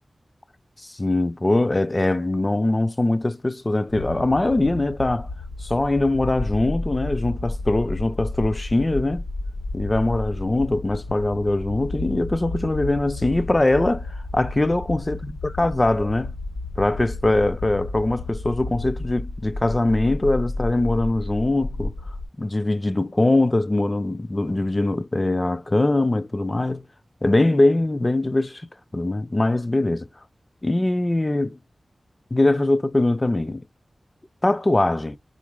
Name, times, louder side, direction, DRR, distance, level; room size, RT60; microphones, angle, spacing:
voice 1, 0.8-5.3 5.6-9.2 9.7-16.3 16.8-21.9 22.4-26.8 27.2-28.7 28.9-30.1 30.6-31.6 32.3-33.6 34.4-35.2, left 2 dB, 30° left, 0.4 m, -22 dB
sound 1, 3.9-22.3, left 2 dB, 80° left, 0.9 m, -32 dB
4.5 x 2.4 x 3.0 m
wide cardioid pair, 60°, 0 cm